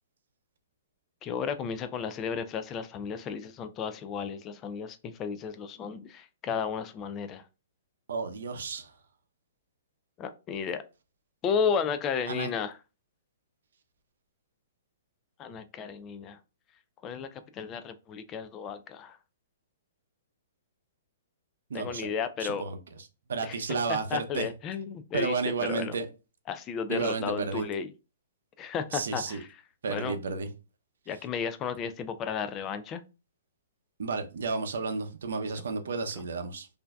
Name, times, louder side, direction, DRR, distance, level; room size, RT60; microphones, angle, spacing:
voice 1, 1.2-7.4 10.2-10.8 11.4-12.8 15.4-16.4 17.0-19.2 21.7-22.6 23.4-23.6 24.1-25.3 25.6-26.0 26.5-27.9 28.6-29.5 29.9-30.1 31.1-33.0, left 6 dB, 25° left, 0.3 m, -33 dB
voice 2, 8.1-8.9 12.3-12.5 21.7-22.1 22.4-22.8 23.3-24.5 25.1-26.1 26.9-27.7 28.9-29.4 29.8-30.5 34.0-36.7, right 4 dB, 80° right, 0.6 m, -32 dB
4.4 x 2.6 x 2.3 m
hypercardioid pair, 140°, 0 cm